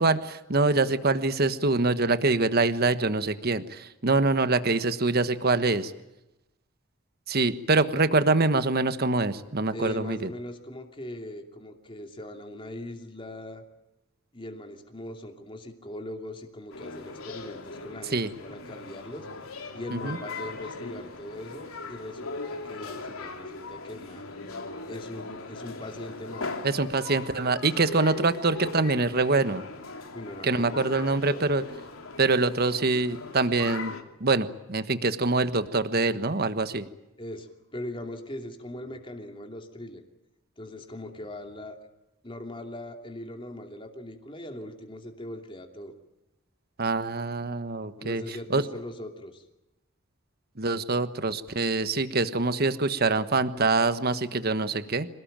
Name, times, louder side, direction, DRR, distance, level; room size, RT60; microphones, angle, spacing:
voice 1, 0.0-5.9 7.3-10.3 18.1-18.3 19.9-20.2 26.6-29.6 30.4-31.6 32.2-33.9 34.2-36.9 46.8-48.6 50.6-55.1, right 3 dB, 45° right, 11 dB, 1.3 m, -25 dB
voice 2, 9.7-13.6 14.3-19.3 19.7-24.3 24.9-26.5 30.1-31.5 37.2-40.0 40.6-41.8 42.2-45.9 48.0-49.4, left 1 dB, 25° left, 4 dB, 2.7 m, -40 dB
sound 1, 16.7-34.0, left 3 dB, 85° left, 3.0 m, -39 dB
27.0 x 18.5 x 9.0 m, 0.96 s
head